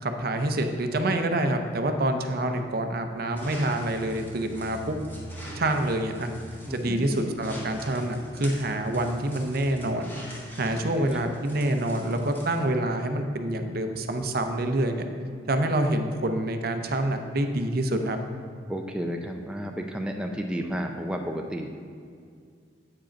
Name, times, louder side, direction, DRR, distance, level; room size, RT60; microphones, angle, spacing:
voice 1, 0.0-4.9 5.6-6.3 6.7-10.1 10.6-15.1 15.5-18.2, right 1 dB, 55° right, 6 dB, 0.6 m, -27 dB
sound 1, 3.3-12.7, equal, 10° left, 1.2 m, -44 dB
voice 2, 6.7-7.3 10.7-11.3 18.7-21.8, equal, 5° right, 2 dB, 0.4 m, -32 dB
8.5 x 5.1 x 5.1 m, 2.2 s
head